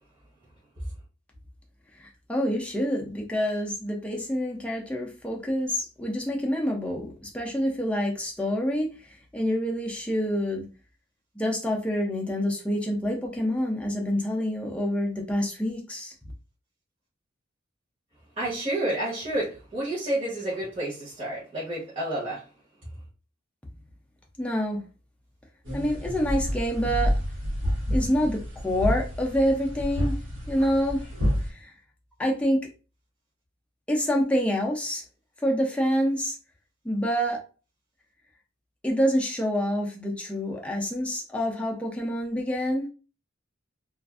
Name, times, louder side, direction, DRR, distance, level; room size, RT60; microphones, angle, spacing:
voice 1, 2.0-10.6 11.4-16.1 24.4-24.8 25.7-27.2 27.9-30.2 30.5-31.0 31.4-31.7 32.2-32.6 33.9-35.0 35.4-36.4 36.8-37.4 38.8-42.9, equal, 5° left, 0.5 m, -27 dB
voice 2, 18.4-22.4, right 1 dB, 30° right, 1.0 m, -30 dB
sound 1, 25.6-31.5, equal, 75° right, 1.1 m, -29 dB
2.5 x 2.4 x 2.4 m
head